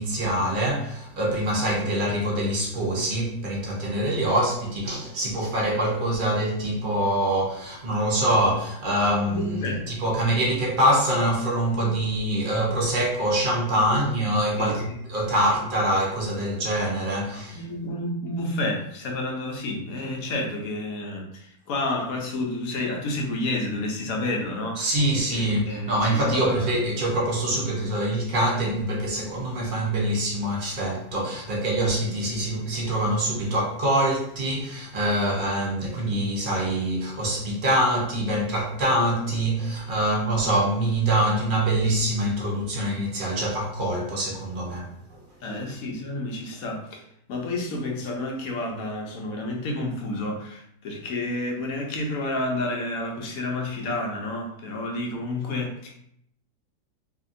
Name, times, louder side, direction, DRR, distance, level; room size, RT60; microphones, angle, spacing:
voice 1, 0.0-14.8 15.1-17.6 24.8-45.2 45.5-45.6, right 1 dB, 55° right, 0.5 m, -25 dB
voice 2, 9.3-9.9 14.6-15.0 17.5-24.9 25.3-26.7 45.4-47.0 47.3-56.1, left 2 dB, 70° left, 0.9 m, -30 dB
2.7 x 2.6 x 2.5 m
omnidirectional pair, 1.7 m